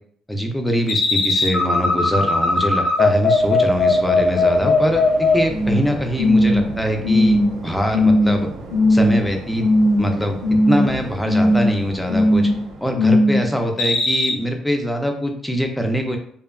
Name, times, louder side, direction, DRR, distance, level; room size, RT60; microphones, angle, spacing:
voice 1, 0.3-7.4 7.6-8.5 8.9-9.7 10.0-10.4 10.7-12.5 12.8-16.2, equal, 5° left, 3 dB, 0.3 m, -23 dB
sound 1, 0.9-5.9 6.2-6.7 7.0-7.6 7.9-8.3 8.7-9.3 9.6-10.1 10.4-10.9 11.3-11.7 12.1-12.6 13.0-13.4 13.8-14.3, left 2 dB, 75° left, 0.6 m, -17 dB
Waves surf, 3.3-13.0, right 2 dB, 85° right, 0.6 m, -35 dB
2.7 x 2.2 x 2.2 m, 0.63 s
cardioid pair, 155°, 0 cm